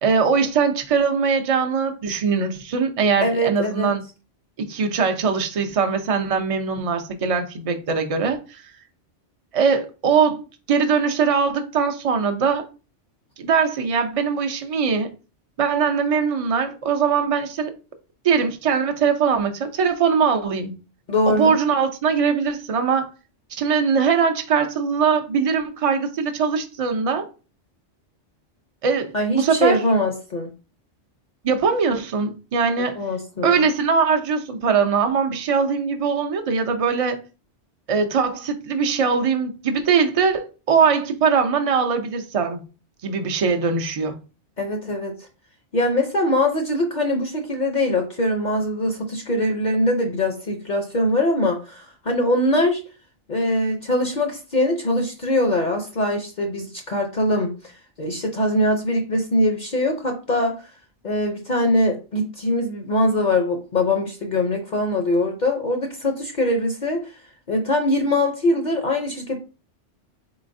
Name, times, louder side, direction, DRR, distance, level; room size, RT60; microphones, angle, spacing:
voice 1, 0.0-4.0 4.6-8.6 9.5-10.4 10.7-12.7 13.4-15.1 15.6-17.7 18.2-20.8 21.3-23.1 23.5-27.3 28.8-29.8 31.4-33.0 33.4-37.2 37.9-42.6 43.0-44.2, right 6 dB, 45° right, 0.4 m, -21 dB
voice 2, 3.2-3.9 21.1-21.6 29.1-30.5 32.8-33.6 44.6-45.2 45.7-52.8 53.3-57.5 58.0-60.6 61.0-67.1 67.5-69.4, left 1 dB, 45° left, 0.7 m, -22 dB
4.0 x 3.9 x 2.6 m
omnidirectional pair, 1.2 m